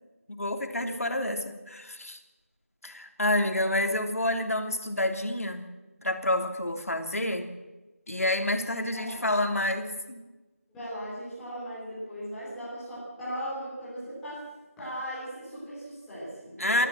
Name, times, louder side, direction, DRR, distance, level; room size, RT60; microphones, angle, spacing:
voice 1, 0.3-2.2 2.8-5.6 6.0-7.5 8.1-10.2 16.6-16.9, left 1 dB, 75° left, 5 dB, 3.1 m, -28 dB
voice 2, 10.7-14.5 14.8-16.9, equal, ahead, -12 dB, 3.6 m, -38 dB
28.0 x 14.0 x 7.6 m, 1.1 s
figure-of-eight pair, 175°, 8 cm